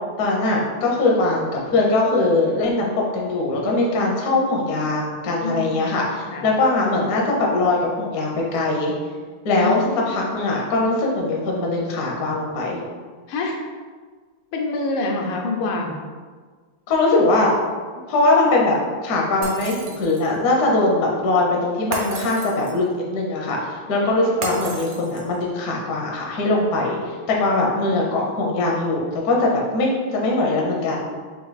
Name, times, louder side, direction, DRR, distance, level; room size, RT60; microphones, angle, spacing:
voice 1, 0.2-8.9 9.4-12.8 16.9-17.5 18.1-18.8 19.0-31.0, left 2 dB, 65° left, -2 dB, 0.9 m, -21 dB
voice 2, 5.4-6.0 6.3-6.5 9.6-10.3 13.3-13.6 14.5-16.0 27.6-28.1, left 2 dB, 80° left, 1 dB, 1.5 m, -27 dB
Shatter, 19.4-20.4 21.9-22.9 24.4-25.4, right 2 dB, 85° right, 1.6 m, -33 dB
4.4 x 2.6 x 4.0 m, 1.5 s
omnidirectional pair, 2.3 m